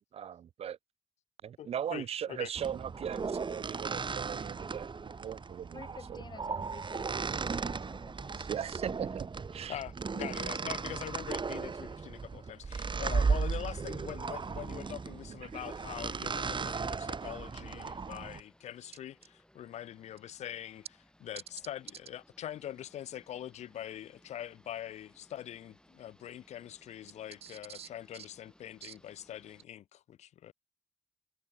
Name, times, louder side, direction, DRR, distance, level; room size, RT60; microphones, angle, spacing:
voice 1, 0.1-0.8 1.4-6.2 8.3-9.8 15.4-15.6 27.4-27.9 28.8-28.9, right 9 dB, 65° right, 0.4 m, -39 dB
voice 2, 1.6-2.5 9.7-20.9 21.2-30.5, left 11 dB, 85° left, 0.7 m, -43 dB
sound 1, 2.6-18.4, right 5 dB, 45° right, 1.0 m, -36 dB
voice 3, 5.7-8.7, left 4 dB, 40° left, 1.2 m, -51 dB
sound 2, 14.2-29.6, left 1 dB, 5° left, 5.0 m, -64 dB
supercardioid pair, 45°, 11 cm